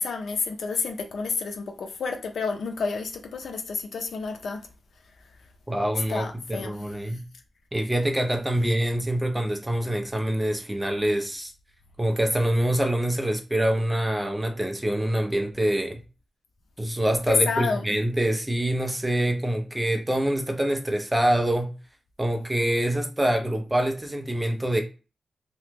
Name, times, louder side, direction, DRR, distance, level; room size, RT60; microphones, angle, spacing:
voice 1, 0.0-4.6 6.1-6.9 17.3-17.9, left 4 dB, 90° left, 0.5 m, -29 dB
voice 2, 5.7-7.3 7.7-11.5 12.0-16.0 16.8-21.7 22.2-24.8, right 1 dB, 10° right, 0.4 m, -25 dB
2.9 x 2.0 x 3.3 m
wide cardioid pair, 165°, 0 cm